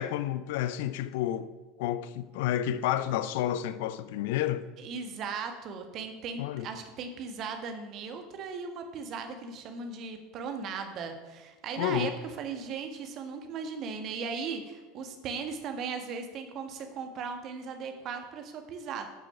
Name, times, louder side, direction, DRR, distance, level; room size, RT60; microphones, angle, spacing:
voice 1, 0.0-1.5 1.8-4.7 6.4-6.7 11.8-12.2, left 11 dB, 60° left, 0.5 m, -30 dB
voice 2, 4.8-19.1, right 5 dB, 45° right, 1.6 m, -37 dB
12.0 x 6.8 x 5.7 m
figure-of-eight pair, 75°, 0 cm